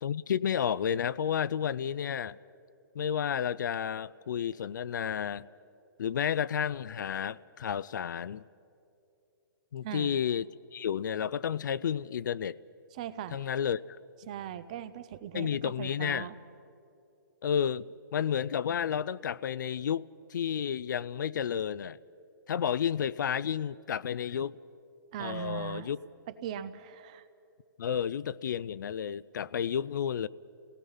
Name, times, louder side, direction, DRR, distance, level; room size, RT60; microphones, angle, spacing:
voice 1, 0.0-2.4 2.9-5.5 6.0-8.4 9.7-12.6 13.3-14.0 15.3-16.3 17.4-22.0 22.5-24.6 25.2-26.0 27.8-30.3, left 8 dB, 60° left, 20 dB, 0.4 m, -31 dB
voice 2, 9.8-10.2 12.9-13.4 14.3-16.4 25.1-25.9 26.4-27.2, right 10 dB, 20° right, 13 dB, 0.4 m, -39 dB
28.5 x 18.0 x 5.5 m, 2.7 s
hypercardioid pair, 175°, 11 cm